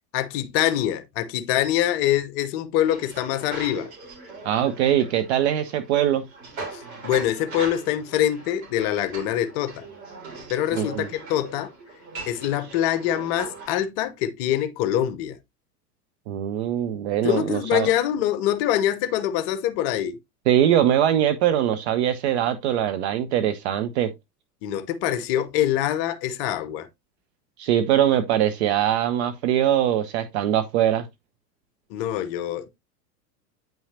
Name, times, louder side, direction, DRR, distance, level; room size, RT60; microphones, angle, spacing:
voice 1, 0.1-3.9 6.7-9.8 10.5-11.7 12.3-15.4 17.2-20.2 24.6-26.9 31.9-32.7, left 11 dB, 35° left, 0.8 m, -24 dB
sound 1, 2.9-13.7, right 3 dB, 60° right, 3.9 m, -40 dB
voice 2, 4.4-6.3 10.7-11.1 16.3-17.9 20.5-24.1 27.6-31.1, right 11 dB, 45° right, 0.6 m, -22 dB
8.9 x 5.6 x 2.7 m
figure-of-eight pair, 85°, 48 cm